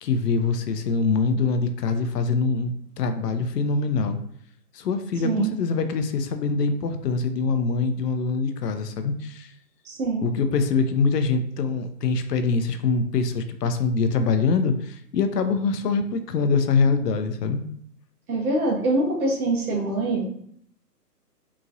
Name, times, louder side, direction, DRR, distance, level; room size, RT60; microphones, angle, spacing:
voice 1, 0.0-4.2 4.7-9.5 10.2-17.6, left 4 dB, 75° left, 8 dB, 0.5 m, -24 dB
voice 2, 5.2-5.6 9.8-10.3 18.3-20.2, right 2 dB, 60° right, 0 dB, 0.9 m, -24 dB
2.9 x 2.4 x 2.5 m, 0.66 s
hypercardioid pair, 165°, 48 cm